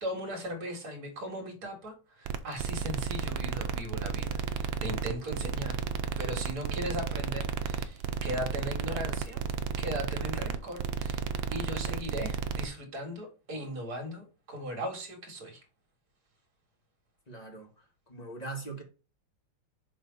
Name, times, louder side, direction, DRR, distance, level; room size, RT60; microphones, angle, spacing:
voice 1, 0.0-5.8 6.2-9.4 9.8-11.2 11.5-15.6, equal, 45° right, 2.5 m, -38 dB
sound 1, 2.2-12.7, right 6 dB, 75° right, 1.4 m, -33 dB
voice 2, 17.3-17.7 18.1-18.8, right 3 dB, 20° left, 1.6 m, -40 dB
6.6 x 3.4 x 5.4 m
omnidirectional pair, 2.3 m